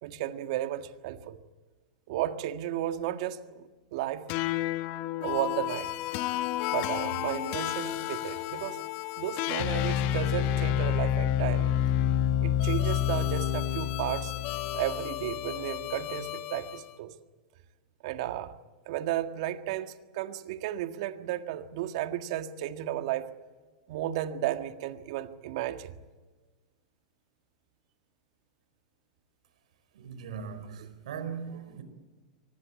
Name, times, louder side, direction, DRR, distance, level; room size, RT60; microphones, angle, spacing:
voice 1, 0.0-1.4 2.1-4.3 5.2-5.9 6.7-8.8 9.2-11.7 12.4-14.3 14.7-17.1 18.0-18.5 18.9-23.3 23.9-26.0, right 12 dB, 60° right, 8 dB, 1.7 m, -33 dB
sound 1, 4.3-16.8, left 12 dB, 50° left, 1.4 m, -29 dB
voice 2, 29.9-31.8, right 6 dB, 75° right, 10 dB, 4.5 m, -39 dB
24.5 x 20.0 x 8.6 m, 1.3 s
hypercardioid pair, 115°, 4 cm